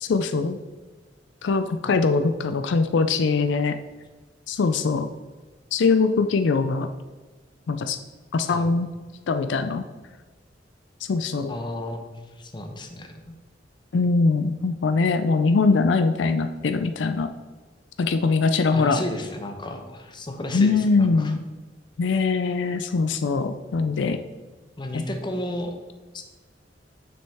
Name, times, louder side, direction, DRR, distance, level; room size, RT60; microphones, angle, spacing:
voice 1, 0.0-0.6 1.4-3.7 4.5-5.1 5.7-6.9 7.7-8.0 8.3-8.9 9.3-9.8 11.1-11.6 13.9-17.3 18.0-19.0 20.5-21.4 22.0-24.2 24.9-25.0, left 4 dB, 75° left, 9 dB, 0.4 m, -22 dB
voice 2, 11.5-13.3 18.7-21.3 24.8-25.7 26.1-26.2, left 1 dB, 25° left, 5 dB, 0.8 m, -33 dB
6.9 x 6.3 x 3.5 m, 1.3 s
head